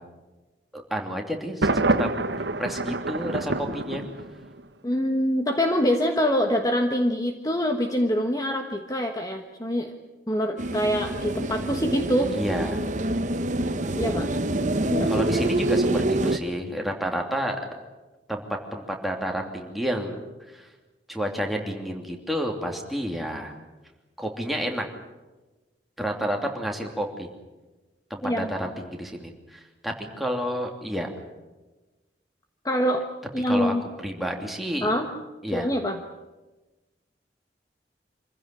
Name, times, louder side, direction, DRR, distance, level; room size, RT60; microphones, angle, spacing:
voice 1, 0.7-2.1 2.6-4.0 12.3-12.8 15.0-17.6 18.3-18.4 18.7-20.7 21.1-23.5 24.2-24.8 26.0-27.3 28.1-31.1 33.5-33.7 34.0-34.9 35.4-35.7, equal, ahead, 1 dB, 2.9 m, -30 dB
Thunder, 1.6-4.6, right 2 dB, 75° right, 1.2 m, -26 dB
voice 2, 4.8-9.9 10.3-12.3 14.0-14.3 14.8-15.2 28.2-28.5 32.6-33.0 33.3-33.8 34.8-35.1 35.5-36.0, equal, 20° left, 4 dB, 1.3 m, -25 dB
sound 1, 10.6-16.4, right 2 dB, 45° right, 1.0 m, -26 dB
26.5 x 15.5 x 10.0 m, 1.2 s
head